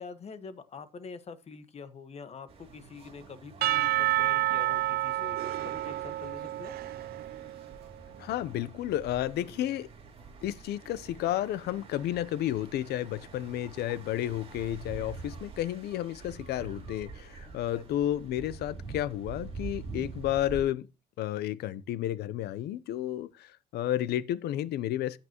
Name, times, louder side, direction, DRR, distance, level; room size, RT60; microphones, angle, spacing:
voice 1, 0.0-6.7 9.2-9.5 17.7-17.8, left 5 dB, 40° left, 1.4 m, -45 dB
sound 1, 2.5-20.6, right 4 dB, 35° right, 3.7 m, -46 dB
Percussion / Church bell, 3.6-7.7, right 16 dB, 65° right, 0.5 m, -29 dB
voice 2, 8.2-9.9 10.4-20.9 21.2-25.2, left 12 dB, 75° left, 0.7 m, -32 dB
15.0 x 5.9 x 3.0 m
cardioid pair, 110°, 17 cm